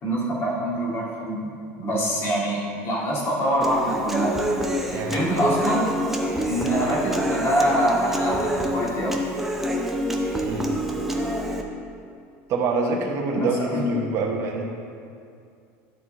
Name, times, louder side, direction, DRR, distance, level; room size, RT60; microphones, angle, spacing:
voice 1, 0.0-1.5 1.8-4.4 4.9-5.9 6.4-9.2 13.3-13.8, right 1 dB, 35° left, -4 dB, 2.1 m, -25 dB
Human voice / Acoustic guitar, 3.6-11.6, equal, 5° right, 0.6 m, -26 dB
voice 2, 4.9-5.2 10.4-10.7 12.5-14.7, right 2 dB, 45° right, -1 dB, 1.1 m, -25 dB
12.0 x 4.5 x 3.8 m, 2.4 s
cardioid pair, 145°, 7 cm